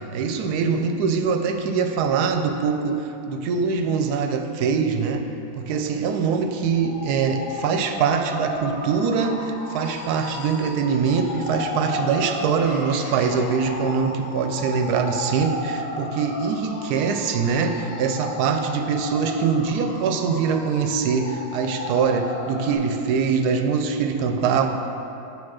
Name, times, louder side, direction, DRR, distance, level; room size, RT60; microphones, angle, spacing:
voice 1, 0.0-5.3 5.6-24.7, right 5 dB, 80° right, 6 dB, 1.1 m, -23 dB
sound 1, 6.6-22.8, left 2 dB, 50° left, 0.9 m, -34 dB
8.6 x 3.6 x 6.2 m, 2.8 s
omnidirectional pair, 1.7 m